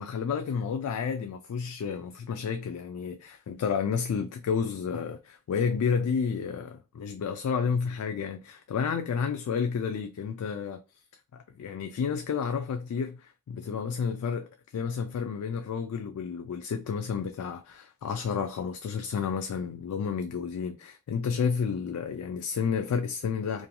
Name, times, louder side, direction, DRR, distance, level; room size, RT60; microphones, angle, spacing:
voice 1, 0.0-10.8 11.3-23.7, left 6 dB, 85° left, 0.3 m, -31 dB
2.5 x 2.2 x 2.8 m
head